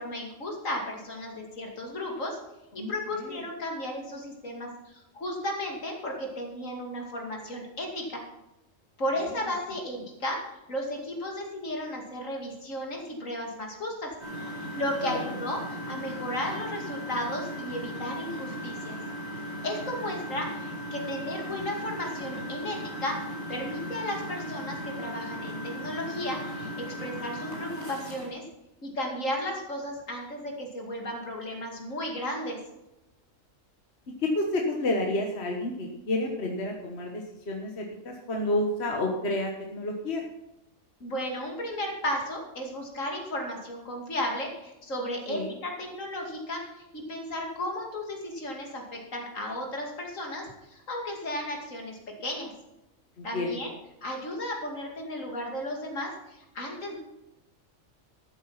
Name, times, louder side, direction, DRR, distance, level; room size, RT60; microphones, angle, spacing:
voice 1, 0.0-2.4 2.7-8.2 9.0-14.1 14.8-19.0 19.6-28.4 28.8-32.6 41.0-46.6 46.9-52.5 53.2-53.7 54.0-57.0, left 1 dB, 75° left, 1 dB, 2.8 m, -34 dB
voice 2, 2.8-3.4 9.4-9.5 15.0-15.2 34.2-40.2 45.3-45.6 53.2-53.6, left 1 dB, 55° left, 1 dB, 1.6 m, -30 dB
Engine, 14.2-28.3, equal, 55° right, 3.8 m, -37 dB
13.0 x 8.4 x 5.7 m, 0.93 s
omnidirectional pair, 1.4 m